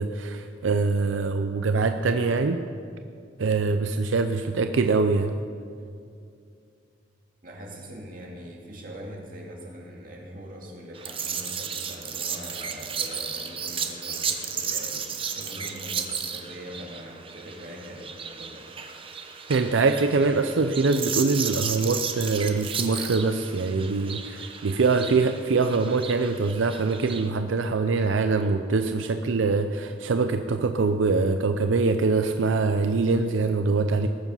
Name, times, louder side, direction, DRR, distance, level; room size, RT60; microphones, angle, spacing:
voice 1, 0.0-2.6 3.4-5.4 19.5-34.1, right 4 dB, 85° right, 7 dB, 0.5 m, -24 dB
voice 2, 7.4-18.7, equal, 45° right, -1 dB, 2.3 m, -42 dB
sound 1, 10.9-27.3, right 6 dB, 30° right, 0.8 m, -34 dB
19.5 x 7.2 x 5.6 m, 2.3 s
head